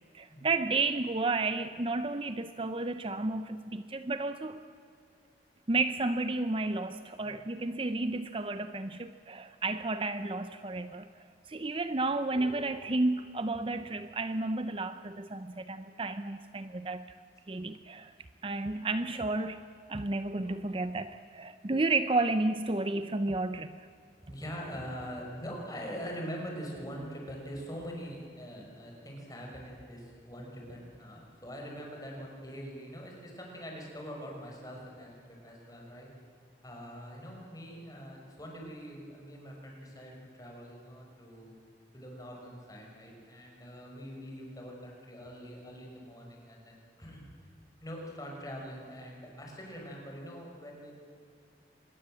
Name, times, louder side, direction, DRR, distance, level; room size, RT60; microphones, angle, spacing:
voice 1, 0.1-4.6 5.7-11.1 11.5-17.1 17.5-18.1 18.4-23.8, right 2 dB, 30° right, 0.6 m, -32 dB
voice 2, 12.3-12.6 24.3-36.1 36.6-41.6 41.9-47.3 47.8-50.9, equal, 20° left, 5.8 m, -43 dB
25.5 x 21.0 x 7.7 m
head